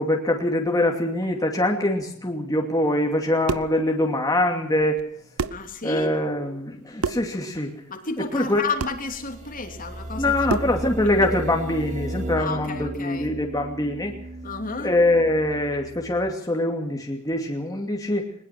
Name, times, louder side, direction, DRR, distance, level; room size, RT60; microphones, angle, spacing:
voice 1, 0.0-5.0 5.8-7.7 8.3-8.6 10.2-14.1 14.8-18.3, left 1 dB, 15° left, 1 dB, 2.6 m, -23 dB
sound 1, 2.1-2.4 2.7-3.0 3.3-3.6 3.9-4.2 4.6-4.9 5.2-5.4 8.6-16.3, right 1 dB, 35° right, 2.8 m, -36 dB
sound 2, 3.2-3.8 5.0-5.1 5.4-5.7 7.0-7.3 8.8-9.0 10.5-10.8, right 4 dB, 85° right, 0.9 m, -28 dB
voice 2, 5.5-6.1 7.9-10.4 12.4-13.3 14.4-14.9, left 4 dB, 40° left, 5 dB, 3.1 m, -31 dB
21.5 x 21.0 x 6.0 m, 0.64 s
head